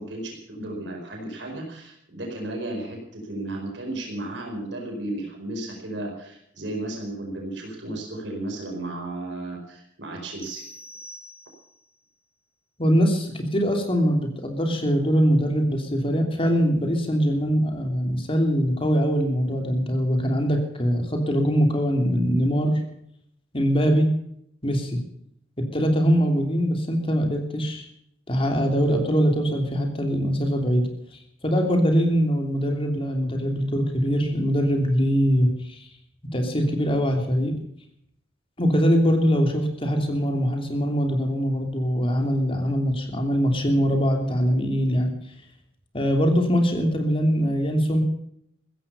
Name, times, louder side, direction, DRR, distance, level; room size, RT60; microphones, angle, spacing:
voice 1, 0.0-10.6, right 1 dB, 70° right, 1 dB, 4.7 m, -34 dB
sound 1, 10.4-11.9, equal, 50° right, 4.5 m, -44 dB
voice 2, 12.8-22.8 23.5-24.1 24.6-25.0 25.6-27.9 28.3-30.9 31.4-35.8 36.3-37.5 38.6-45.1 45.9-48.0, equal, 30° left, 3 dB, 3.0 m, -22 dB
15.5 x 14.5 x 5.5 m, 0.73 s
head